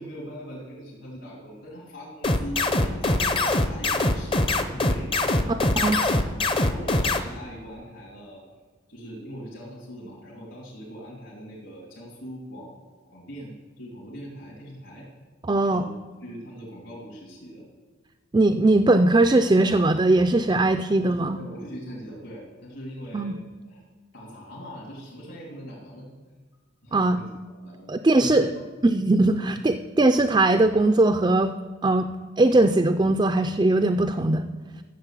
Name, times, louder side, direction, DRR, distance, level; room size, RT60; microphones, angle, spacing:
voice 1, 0.0-5.9 6.6-8.4 8.9-12.8 13.1-15.1 15.6-15.9 16.2-17.7 21.0-23.8 24.1-26.1 26.8-28.7 29.4-29.6, equal, 65° left, -4 dB, 3.0 m, -41 dB
sound 1, 2.2-7.2, left 2 dB, 25° left, 0.6 m, -22 dB
voice 2, 5.5-6.0 15.5-15.8 18.3-21.4 23.1-23.4 26.9-27.2 27.9-28.5 28.8-31.5 31.8-32.1 32.4-34.5, right 2 dB, 20° right, 7 dB, 0.4 m, -20 dB
12.5 x 7.4 x 7.4 m, 1.4 s
head